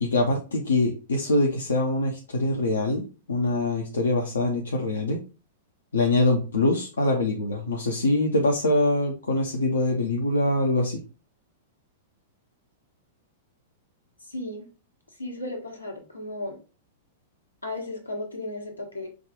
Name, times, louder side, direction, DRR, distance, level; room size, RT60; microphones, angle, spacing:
voice 1, 0.0-5.2 5.9-11.0, left 2 dB, 70° left, 1 dB, 0.7 m, -24 dB
voice 2, 14.2-14.7 15.2-16.6 17.6-19.1, left 1 dB, 90° left, -1 dB, 1.3 m, -35 dB
4.9 x 2.4 x 3.5 m, 0.34 s
figure-of-eight pair, 100°, 0 cm